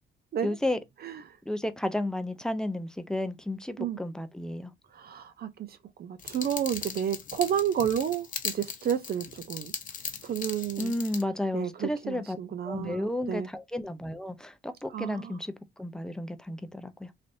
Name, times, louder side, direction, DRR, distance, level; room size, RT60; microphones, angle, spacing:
voice 1, 0.4-0.8 1.5-4.7 10.8-12.4 12.6-15.5 15.8-17.1, left 1 dB, 5° left, 0.5 m, -32 dB
voice 2, 4.9-9.7 10.2-10.9 11.5-13.5 14.9-15.4, right 9 dB, 50° right, 0.5 m, -31 dB
sound 1, 6.2-11.2, left 6 dB, 40° left, 0.8 m, -38 dB
3.3 x 2.6 x 2.5 m
cardioid pair, 90°, 20 cm